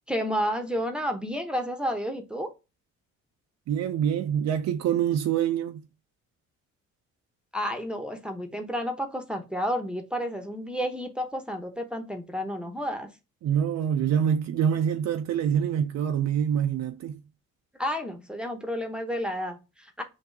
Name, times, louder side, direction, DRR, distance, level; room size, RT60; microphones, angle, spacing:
voice 1, 0.1-2.5 7.5-13.1 17.8-20.0, equal, 5° right, 0.9 m, -31 dB
voice 2, 3.7-5.9 13.4-17.2, right 9 dB, 60° right, 0.5 m, -25 dB
6.0 x 2.7 x 2.6 m
cardioid pair, 90°, 30 cm